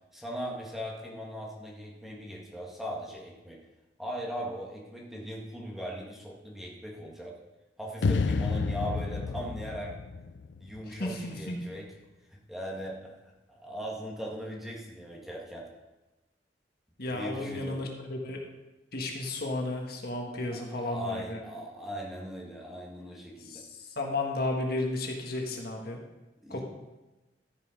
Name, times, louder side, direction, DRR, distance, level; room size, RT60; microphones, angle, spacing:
voice 1, 0.1-3.6 4.0-7.4 7.8-9.9 10.6-11.9 12.5-15.7 17.1-17.9 20.5-23.6 26.4-26.6, equal, ahead, -3 dB, 1.6 m, -39 dB
sound 1, 8.0-11.2, left 4 dB, 75° left, 0.4 m, -30 dB
voice 2, 10.9-11.6 17.0-18.4 18.9-21.4 23.4-26.0 26.5-26.6, left 2 dB, 60° left, 1 dB, 1.5 m, -33 dB
13.5 x 5.4 x 5.1 m, 1.1 s
head